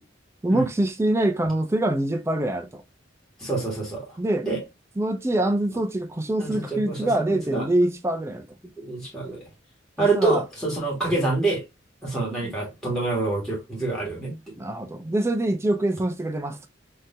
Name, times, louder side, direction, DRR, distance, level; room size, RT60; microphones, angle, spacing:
voice 1, 0.4-2.8 4.2-4.5 5.0-8.5 10.0-10.4 14.6-16.7, right 1 dB, 15° right, 0.4 m, -24 dB
voice 2, 3.4-4.2 4.4-4.6 6.4-7.7 8.8-9.5 10.0-11.6 12.0-14.3, right 3 dB, 5° left, 1.5 m, -26 dB
3.8 x 2.7 x 2.5 m
head